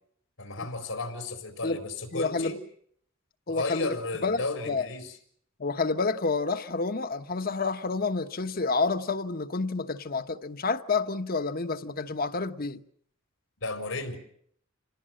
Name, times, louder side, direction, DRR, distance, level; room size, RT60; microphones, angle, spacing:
voice 1, 0.4-2.6 3.5-5.2 13.6-14.2, left 3 dB, 85° left, 4.3 m, -34 dB
voice 2, 2.1-2.6 3.5-4.0 4.2-4.4 4.7-4.8 5.6-12.8, left 4 dB, 45° left, 1.1 m, -29 dB
27.5 x 19.0 x 7.7 m
head